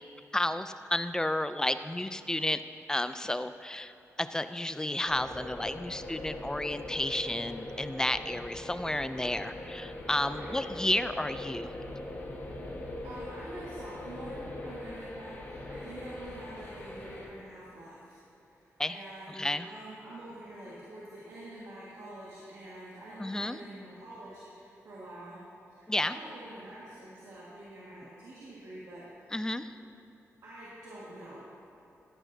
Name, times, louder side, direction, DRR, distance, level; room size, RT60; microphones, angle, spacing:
voice 1, 0.3-2.6 2.9-11.7 18.8-19.0 19.4-19.7 23.2-23.6 25.9-26.2 29.3-29.7, left 1 dB, 10° left, 12 dB, 0.4 m, -31 dB
sound 1, 5.1-17.3, left 1 dB, 45° left, 1.6 m, -41 dB
voice 2, 13.0-25.4 25.7-29.1 30.4-31.5, right 1 dB, 80° right, -8 dB, 1.8 m, -46 dB
13.5 x 10.0 x 2.8 m, 2.9 s
cardioid pair, 80°, 5 cm